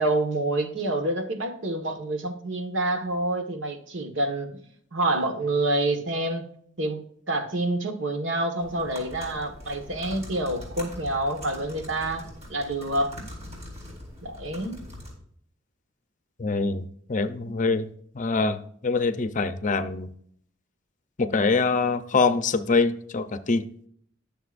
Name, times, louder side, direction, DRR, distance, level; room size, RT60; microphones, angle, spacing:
voice 1, 0.0-4.7 4.9-6.4 6.8-13.1 14.2-14.8, right 2 dB, 70° right, 6 dB, 1.6 m, -27 dB
sound 1, 8.6-15.1, left 1 dB, 35° right, 4.0 m, -42 dB
voice 2, 16.4-16.8 17.1-17.9 18.1-20.1 21.2-23.7, left 4 dB, 40° left, 11 dB, 0.6 m, -24 dB
21.0 x 7.0 x 2.6 m, 0.64 s
head